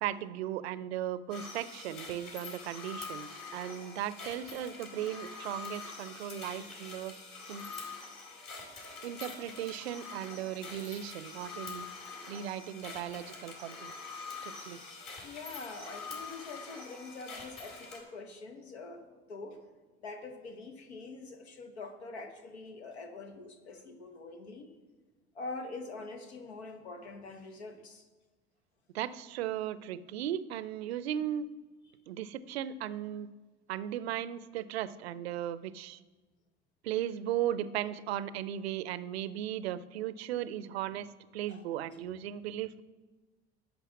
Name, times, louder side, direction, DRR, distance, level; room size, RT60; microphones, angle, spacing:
voice 1, 0.0-7.1 7.5-7.7 9.0-11.9 12.3-13.9 14.4-14.8 28.9-31.5 32.1-33.3 33.7-36.0 36.8-42.8, right 11 dB, 75° right, 17 dB, 0.5 m, -36 dB
sound 1, 1.3-18.0, left 4 dB, 50° left, 3.9 m, -45 dB
voice 2, 14.2-14.5 15.2-19.6 20.0-24.7 25.3-28.1 41.5-41.6, left 3 dB, 80° left, 6 dB, 1.2 m, -45 dB
11.0 x 5.5 x 7.2 m, 1.3 s
figure-of-eight pair, 60°, 32 cm